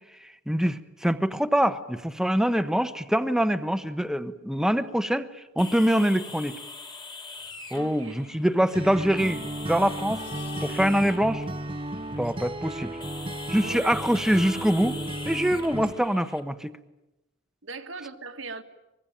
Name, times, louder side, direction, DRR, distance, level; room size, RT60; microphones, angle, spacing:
voice 1, 0.5-5.3 5.6-6.6 7.7-10.2 10.6-11.4 12.2-13.0 13.5-15.0 15.3-16.7, equal, 5° right, 10 dB, 1.0 m, -24 dB
sound 1, 5.6-16.4, left 3 dB, 20° left, 2.0 m, -43 dB
sound 2, 7.4-12.7, left 2 dB, 40° left, 3.9 m, -50 dB
voice 2, 7.7-8.2 13.6-14.0 17.6-18.6, right 3 dB, 70° right, 6 dB, 1.8 m, -39 dB
Acoustic guitar, 8.7-15.9, right 1 dB, 25° right, 0.8 m, -34 dB
24.5 x 22.5 x 9.0 m, 0.96 s
head